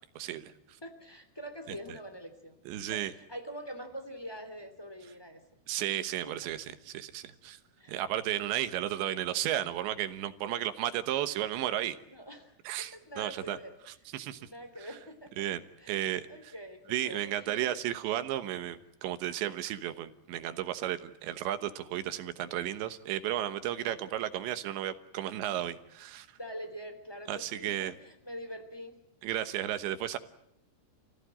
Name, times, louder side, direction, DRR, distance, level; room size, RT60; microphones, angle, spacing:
voice 1, 0.2-0.5 2.7-3.1 5.7-7.6 7.9-12.0 12.7-13.6 14.1-14.5 15.4-15.6 15.9-16.3 16.9-26.3 27.3-27.9 29.2-30.2, right 12 dB, 75° right, 11 dB, 3.3 m, -33 dB
voice 2, 0.8-2.6 2.9-5.4 6.3-6.4 7.8-8.0 8.7-9.0 12.1-12.6 12.9-13.8 14.4-15.5 15.8-17.7 23.8-24.1 26.4-28.9, equal, 5° left, 8 dB, 2.0 m, -45 dB
28.5 x 17.0 x 10.0 m, 0.78 s
omnidirectional pair, 5.4 m